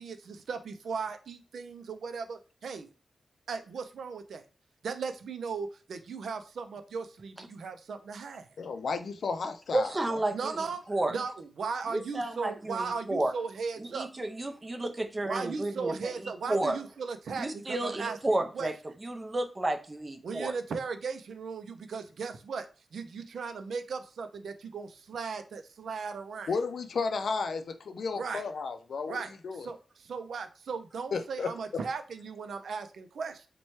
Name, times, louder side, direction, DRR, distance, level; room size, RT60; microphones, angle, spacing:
voice 1, 0.0-2.9 3.5-4.4 4.8-8.5 10.3-10.8 11.1-14.1 15.2-18.7 20.2-22.7 22.9-26.5 28.2-28.4 29.1-33.4, right 5 dB, 85° right, 0.4 m, -37 dB
voice 2, 8.6-9.9 26.5-29.2 29.4-29.7 31.1-31.8, left 4 dB, 75° left, 0.4 m, -33 dB
voice 3, 9.7-11.1 11.9-13.3 13.8-16.8 17.3-20.5, right 1 dB, 25° right, 0.5 m, -32 dB
4.2 x 2.2 x 3.0 m
wide cardioid pair, 95°, 0 cm